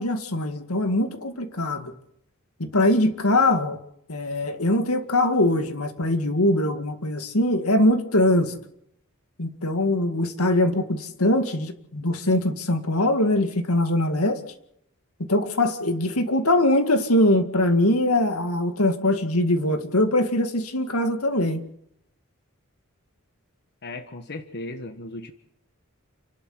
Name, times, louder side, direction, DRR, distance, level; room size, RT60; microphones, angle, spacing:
voice 1, 0.0-1.9 2.6-3.8 4.1-8.6 9.4-14.4 15.3-21.6, left 1 dB, 80° left, 2.1 m, -22 dB
voice 2, 23.8-25.3, left 2 dB, 50° left, 1.3 m, -36 dB
29.5 x 12.0 x 7.8 m
head